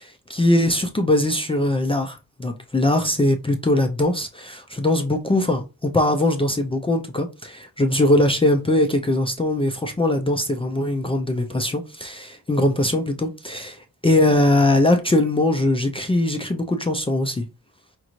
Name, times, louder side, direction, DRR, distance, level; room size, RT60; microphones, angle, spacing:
voice 1, 0.0-17.5, left 1 dB, 15° left, 0.4 m, -21 dB
5.2 x 2.5 x 3.0 m
wide cardioid pair, 145°, 37 cm